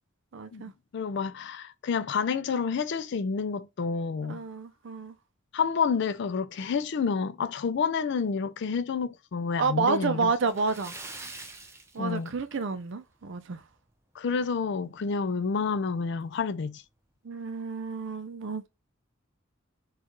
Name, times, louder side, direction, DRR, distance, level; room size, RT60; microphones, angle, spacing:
voice 1, 0.3-0.7 4.2-5.1 9.6-10.9 11.9-13.6 17.2-18.7, right 4 dB, 65° right, 0.5 m, -30 dB
voice 2, 0.9-4.4 5.5-10.3 12.0-12.3 14.2-16.8, left 5 dB, 60° left, 0.4 m, -29 dB
Splash splatter, 10.4-12.8 13.1-13.3 13.7-13.8 15.3-15.4 15.7-15.8 16.4-16.7, right 2 dB, 15° right, 0.6 m, -44 dB
4.4 x 2.4 x 3.0 m
head